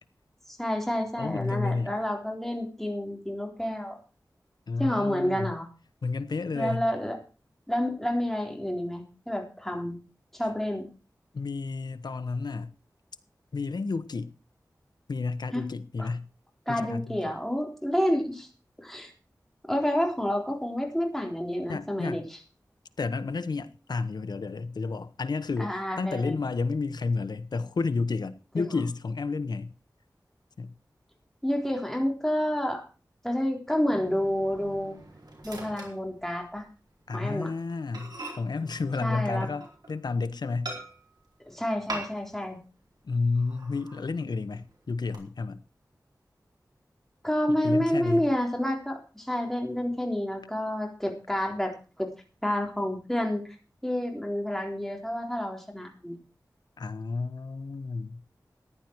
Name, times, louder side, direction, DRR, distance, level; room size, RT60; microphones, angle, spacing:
voice 1, 0.5-4.0 4.8-5.7 6.5-7.2 7.7-10.0 10.3-10.9 15.5-15.7 16.0-16.1 16.7-18.5 18.8-19.1 19.7-22.2 25.6-26.4 28.6-28.7 31.4-32.8 33.2-35.0 35.4-36.7 37.1-37.5 39.0-39.5 41.5-42.6 47.2-52.1 52.4-53.5 53.8-56.2, equal, 5° left, 3.8 m, -29 dB
voice 2, 1.2-1.9 4.7-5.5 6.0-6.8 11.3-12.7 13.5-14.3 15.1-16.3 16.7-17.2 21.7-22.2 23.0-29.7 30.6-30.7 37.1-40.7 43.0-45.6 47.5-48.2 56.8-58.2, left 4 dB, 80° left, 1.0 m, -31 dB
Microwave oven, 33.9-36.7 37.1-37.3 37.6-37.7 37.9-40.0 40.6-41.3 41.9-42.5 42.7-42.8 43.3-44.1 44.5-45.2, right 2 dB, 75° right, 4.4 m, -42 dB
14.5 x 10.5 x 4.6 m
wide cardioid pair, 80°, 7 cm